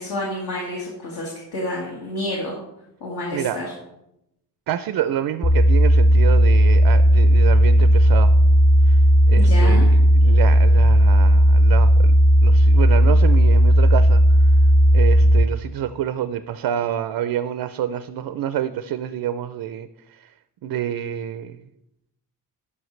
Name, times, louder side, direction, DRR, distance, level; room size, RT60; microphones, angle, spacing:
voice 1, 0.0-2.6 3.0-3.7 9.3-9.9, left 1 dB, 65° left, -4 dB, 1.9 m, -29 dB
voice 2, 4.7-8.4 8.9-9.0 9.3-12.1 12.4-14.2 14.9-20.2 20.6-21.5, right 10 dB, 70° right, 12 dB, 0.5 m, -27 dB
sound 1, 5.4-15.4, equal, 20° left, 0.5 m, -14 dB
12.5 x 5.5 x 3.2 m, 0.84 s
wide cardioid pair, 135°, 40 cm